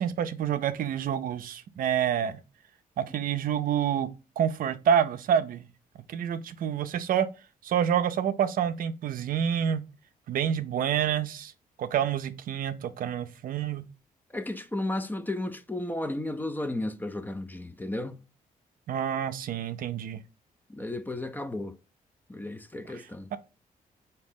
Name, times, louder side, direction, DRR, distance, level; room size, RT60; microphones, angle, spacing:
voice 1, 0.0-2.4 3.0-4.1 4.4-5.7 6.1-7.3 7.6-9.8 10.3-11.5 11.8-13.8 18.9-20.2 22.9-23.4, right 8 dB, 70° right, 0.5 m, -28 dB
voice 2, 14.3-18.2 20.7-21.8 22.3-23.3, left 1 dB, 10° left, 0.4 m, -33 dB
4.0 x 2.8 x 3.5 m
cardioid pair, 80°, 15 cm